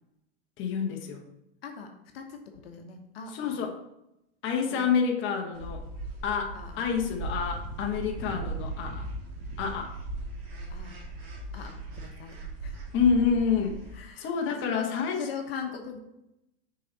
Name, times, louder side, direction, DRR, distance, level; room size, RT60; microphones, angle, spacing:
voice 1, 0.6-1.2 3.3-3.7 4.4-5.8 6.2-9.1 9.6-9.9 12.9-13.8 14.2-15.3, left 6 dB, 40° left, 2 dB, 1.1 m, -28 dB
voice 2, 1.6-3.6 4.7-4.9 6.5-6.9 10.7-11.0 11.5-12.9 13.9-16.0, left 6 dB, 80° left, 4 dB, 1.1 m, -41 dB
sound 1, 5.5-14.0, right 2 dB, 50° right, 2.1 m, -38 dB
6.4 x 4.0 x 4.0 m, 0.85 s
hypercardioid pair, 120°, 30 cm